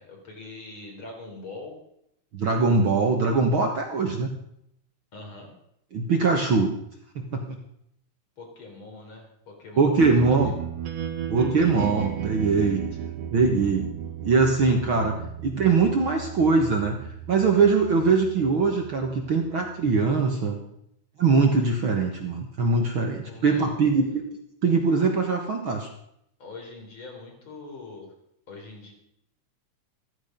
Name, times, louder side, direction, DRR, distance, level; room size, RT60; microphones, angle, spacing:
voice 1, 0.0-1.7 5.1-5.5 8.4-10.6 23.2-23.7 26.4-28.1 28.5-28.9, left 3 dB, 40° left, 1 dB, 4.7 m, -42 dB
voice 2, 2.3-4.4 5.9-6.7 7.2-7.6 9.8-10.5 11.3-12.8 13.3-13.9 14.2-15.2 15.4-17.0 17.3-20.6 21.2-24.3 24.6-25.9, right 4 dB, 50° right, 2 dB, 1.8 m, -22 dB
sound 1, 10.0-20.0, right 9 dB, 80° right, 3.2 m, -35 dB
15.0 x 14.5 x 5.3 m, 0.75 s
omnidirectional pair, 3.6 m